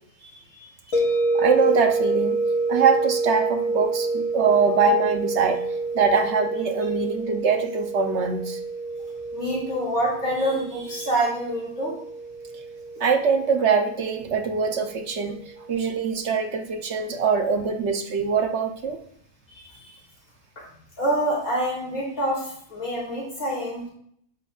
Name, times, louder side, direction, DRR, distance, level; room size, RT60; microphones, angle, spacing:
voice 1, 0.2-1.0 9.3-11.9 19.5-20.0 20.6-20.7 21.0-23.9, right 1 dB, 90° left, -5 dB, 3.8 m, -27 dB
sound 1, 0.9-15.9, right 3 dB, 70° left, 1.6 m, -28 dB
voice 2, 1.3-2.4 2.7-5.6 5.9-8.6 13.0-15.4 15.7-19.0, right 5 dB, 60° right, 5 dB, 1.0 m, -23 dB
9.6 x 7.9 x 2.4 m, 0.66 s
omnidirectional pair, 1.5 m